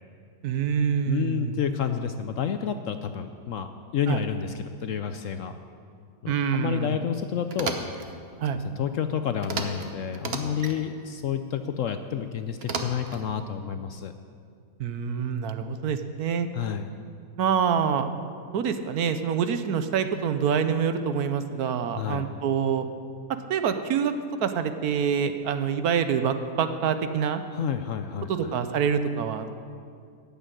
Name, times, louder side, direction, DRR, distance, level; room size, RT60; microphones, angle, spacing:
voice 1, 0.4-1.5 4.1-4.2 6.3-7.0 8.4-8.6 14.8-16.5 17.4-18.1 18.5-22.9 23.5-24.1 24.4-27.4 28.3-29.5, right 7 dB, 70° right, 9 dB, 1.2 m, -26 dB
voice 2, 1.1-5.5 6.2-7.8 8.5-14.1 16.5-16.9 21.9-22.3 27.5-28.5, left 8 dB, 65° left, 8 dB, 0.8 m, -30 dB
sound 1, 7.5-8.1 9.4-9.9 10.1-10.8 12.6-13.2, right 4 dB, 45° right, 1.0 m, -32 dB
13.5 x 7.1 x 9.1 m, 2.2 s
omnidirectional pair, 1.7 m